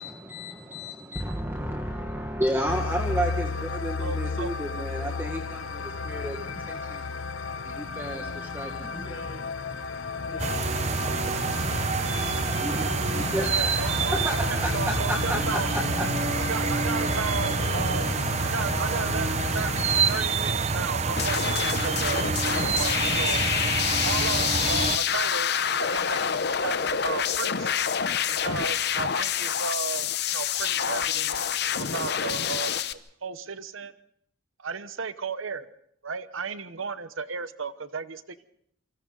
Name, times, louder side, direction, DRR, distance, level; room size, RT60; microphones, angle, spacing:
voice 1, 0.0-7.0 7.6-8.9 12.6-14.7 15.1-15.4 16.0-16.1, equal, 10° right, 2 dB, 1.7 m, -32 dB
sound 1, 2.7-20.2, left 4 dB, 90° left, 1.0 m, -33 dB
voice 2, 4.0-4.5 13.5-15.7 16.3-18.1 18.4-23.4 24.0-27.7 28.3-31.4 31.8-33.9 34.6-35.7 36.0-38.5, right 5 dB, 85° right, 13 dB, 1.0 m, -34 dB
voice 3, 8.9-12.8 15.2-16.7 17.4-18.0, left 1 dB, 25° left, -1 dB, 7.8 m, -46 dB
sound 2, 10.4-25.0, right 4 dB, 35° right, 0.8 m, -27 dB
sound 3, 21.2-32.9, left 8 dB, 55° left, 0.8 m, -27 dB
28.0 x 25.0 x 4.0 m, 0.69 s
head